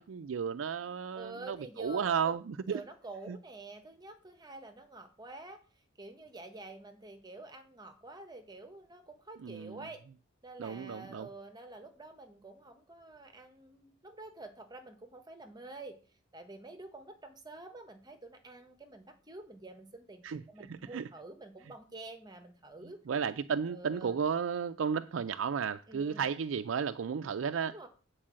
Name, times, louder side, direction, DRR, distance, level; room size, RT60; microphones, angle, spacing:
voice 1, 0.0-2.8 3.3-3.4 9.4-9.8 10.6-11.3 20.2-20.4 20.7-21.0 23.1-27.7, right 6 dB, 85° right, 0.4 m, -33 dB
voice 2, 1.1-5.6 6.0-10.0 10.4-16.0 16.3-23.0 23.7-24.2 25.9-26.3 27.6-27.9, right 2 dB, 20° right, 1.2 m, -48 dB
8.8 x 4.7 x 7.5 m
head